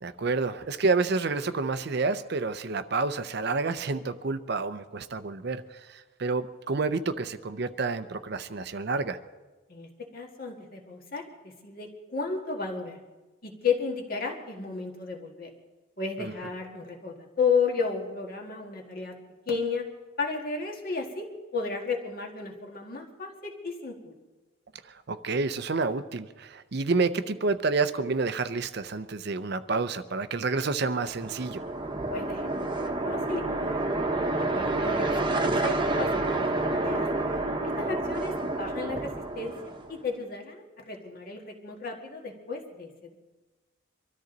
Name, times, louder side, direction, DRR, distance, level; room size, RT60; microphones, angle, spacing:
voice 1, 0.0-5.6 5.9-9.2 16.2-16.3 25.1-31.6, right 3 dB, 50° right, 12 dB, 0.5 m, -29 dB
voice 2, 9.7-13.0 13.4-15.5 16.0-19.1 19.5-19.8 20.2-24.1 32.1-33.8 34.1-37.1 37.6-39.5 39.9-43.2, left 5 dB, 45° left, 1 dB, 1.9 m, -33 dB
sound 1, 31.0-40.0, right 2 dB, 20° right, 1.0 m, -29 dB
24.0 x 13.5 x 4.0 m, 1.2 s
head